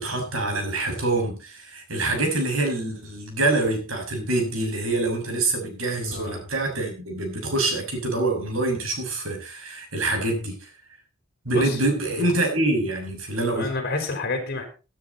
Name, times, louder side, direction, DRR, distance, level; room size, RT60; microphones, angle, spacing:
voice 1, 0.0-10.7 11.4-13.7, right 2 dB, 85° right, 3 dB, 6.3 m, -25 dB
voice 2, 6.0-6.4 11.5-11.8 12.1-12.3 13.5-14.6, left 3 dB, 55° left, 3 dB, 5.0 m, -29 dB
17.0 x 10.0 x 4.2 m, 0.34 s
head